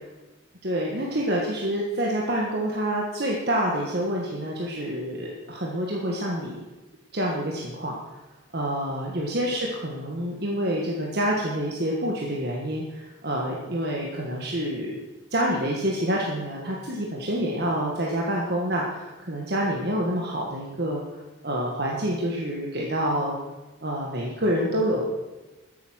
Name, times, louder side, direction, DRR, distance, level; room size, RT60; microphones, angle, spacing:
voice 1, 0.6-6.5 7.1-7.9 8.5-14.9 15.3-21.0 21.4-23.3 23.8-25.0, equal, 50° right, -2 dB, 1.6 m, -27 dB
13.0 x 8.2 x 6.3 m, 1.1 s
head